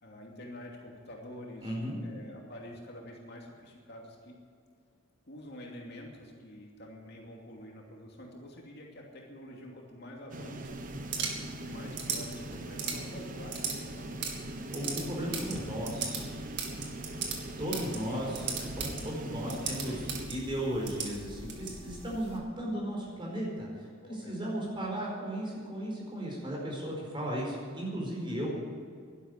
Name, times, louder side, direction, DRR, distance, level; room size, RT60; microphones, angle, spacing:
voice 1, 0.0-1.8 2.0-4.3 5.3-10.8 11.6-14.2 17.7-20.1 24.0-24.4 28.3-28.4, left 1 dB, 55° left, -1 dB, 2.7 m, -47 dB
voice 2, 1.6-2.0 14.7-16.3 17.6-18.4 18.8-20.0 20.3-28.5, equal, 25° right, -3 dB, 4.7 m, -35 dB
sound 1, 10.3-20.3, right 1 dB, 40° right, 1.1 m, -41 dB
sound 2, 10.6-22.4, right 5 dB, 55° right, 2.4 m, -39 dB
12.0 x 11.5 x 9.8 m, 2.1 s
head